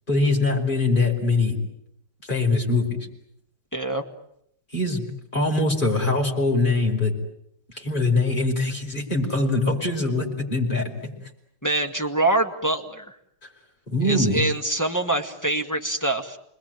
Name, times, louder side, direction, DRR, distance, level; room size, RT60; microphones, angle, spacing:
voice 1, 0.1-1.6 2.3-2.8 4.7-5.0 5.3-7.1 7.8-10.9 13.9-14.4, left 2 dB, 25° left, 0 dB, 5.3 m, -22 dB
voice 2, 3.7-4.0 11.6-13.2 14.0-16.4, right 2 dB, 10° left, 4 dB, 1.8 m, -25 dB
30.0 x 21.0 x 9.2 m, 0.75 s
omnidirectional pair, 1.9 m